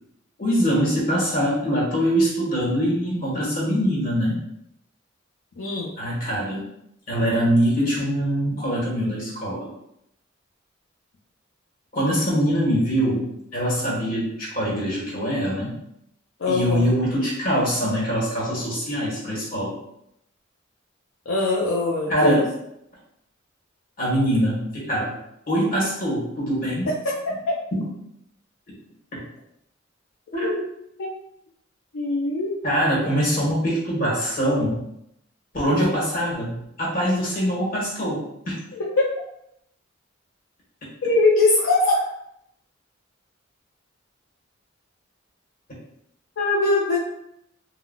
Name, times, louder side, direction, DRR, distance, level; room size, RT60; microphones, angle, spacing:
voice 1, 0.4-4.4 6.0-6.6 7.1-9.7 11.9-15.8 16.5-19.7 22.1-22.5 24.0-25.1 25.5-26.9 27.7-27.9 29.1-29.2 30.3-30.5 32.6-34.8 35.5-38.5, equal, 45° left, -5 dB, 1.3 m, -23 dB
voice 2, 5.6-5.9 16.4-16.9 21.3-22.4 27.5-27.6 30.4-30.6 31.0-31.1 31.9-32.6 38.7-39.0 41.0-42.0 46.4-47.0, left 2 dB, 70° left, -5 dB, 0.5 m, -21 dB
3.8 x 2.2 x 2.3 m, 0.76 s
head